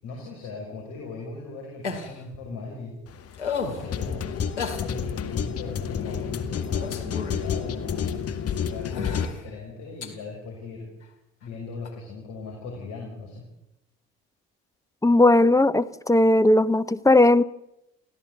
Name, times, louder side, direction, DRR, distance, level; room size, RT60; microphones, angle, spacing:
voice 1, 0.0-2.9 3.8-4.2 4.8-10.9 11.4-13.4, left 3 dB, 60° left, -1 dB, 6.4 m, -39 dB
sound 1, 1.8-2.2 3.3-3.9 4.6-4.8 6.0-6.3 6.6-7.5 8.2-8.3 8.9-9.4 10.0-10.1 11.8-11.9, left 5 dB, 85° left, 2.3 m, -33 dB
sound 2, 3.1-9.2, left 7 dB, 45° left, 2.0 m, -30 dB
voice 2, 15.0-17.4, left 2 dB, 10° left, 12 dB, 0.9 m, -18 dB
29.0 x 16.0 x 8.4 m, 0.90 s
figure-of-eight pair, 55°, 34 cm